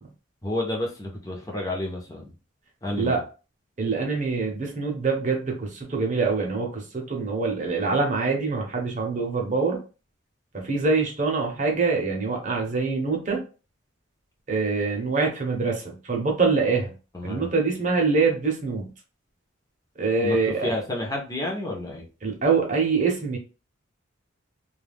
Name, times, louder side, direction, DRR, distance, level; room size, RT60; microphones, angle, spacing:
voice 1, 0.4-2.3 2.8-3.2 17.1-17.5 20.2-22.0, left 1 dB, 15° left, -2 dB, 0.6 m, -30 dB
voice 2, 3.8-9.8 10.5-13.4 14.5-16.9 17.2-18.9 20.0-20.7 22.2-23.4, right 4 dB, 40° right, 1 dB, 0.7 m, -24 dB
2.3 x 2.3 x 3.3 m, 0.34 s
head